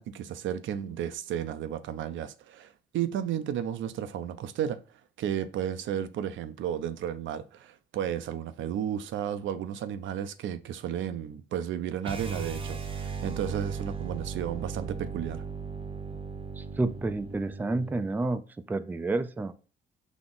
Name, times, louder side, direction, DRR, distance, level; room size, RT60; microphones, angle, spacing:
voice 1, 0.0-4.8 5.2-15.4, right 9 dB, 75° right, 0.5 m, -33 dB
sound 1, 12.0-18.2, right 5 dB, 25° right, 0.7 m, -37 dB
voice 2, 16.6-18.4 18.7-19.5, right 2 dB, 10° right, 0.4 m, -29 dB
4.1 x 2.9 x 3.7 m
cardioid pair, 90°, 20 cm